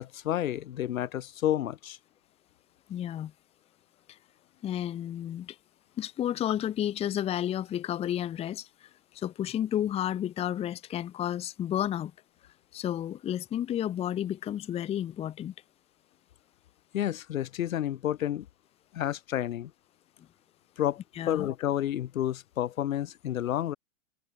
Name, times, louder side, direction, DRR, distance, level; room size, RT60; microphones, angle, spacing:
voice 1, 0.0-2.0 16.9-18.5 18.9-19.7 20.8-21.0 21.3-23.8, left 12 dB, 85° left, 1.7 m, -30 dB
voice 2, 2.9-3.3 4.6-5.6 6.0-8.9 9.1-12.1 12.7-15.5 21.2-21.5, left 11 dB, 15° left, 0.8 m, -31 dB
supercardioid pair, 150°, 40 cm